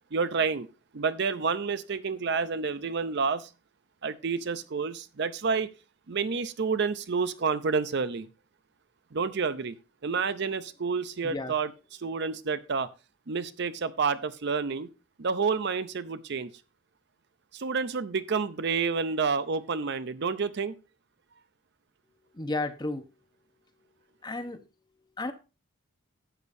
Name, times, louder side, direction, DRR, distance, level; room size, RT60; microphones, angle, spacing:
voice 1, 0.1-0.7 0.9-3.5 4.0-5.7 6.1-8.3 9.1-9.7 10.0-11.7 12.0-12.9 13.3-14.9 15.2-16.5 17.5-20.8, right 5 dB, 55° right, 13 dB, 0.5 m, -29 dB
voice 2, 11.2-11.5 22.3-23.1 24.2-24.6 25.2-25.3, left 2 dB, 20° left, 9 dB, 0.8 m, -32 dB
12.0 x 8.2 x 2.6 m, 0.30 s
head